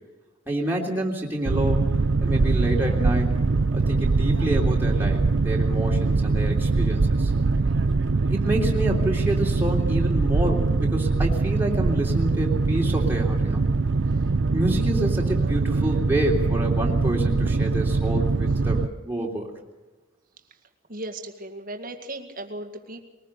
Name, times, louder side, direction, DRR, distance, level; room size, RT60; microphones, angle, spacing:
voice 1, 0.5-1.8 2.2-3.3 3.7-7.3 8.3-13.7 14.5-19.5, right 1 dB, 10° right, -2 dB, 3.3 m, -28 dB
Boat Water vehicle, 1.4-18.9, right 3 dB, 55° right, 0.6 m, -22 dB
voice 2, 20.9-23.0, right 1 dB, 40° right, 5 dB, 2.0 m, -36 dB
21.5 x 20.0 x 6.7 m, 1.2 s
head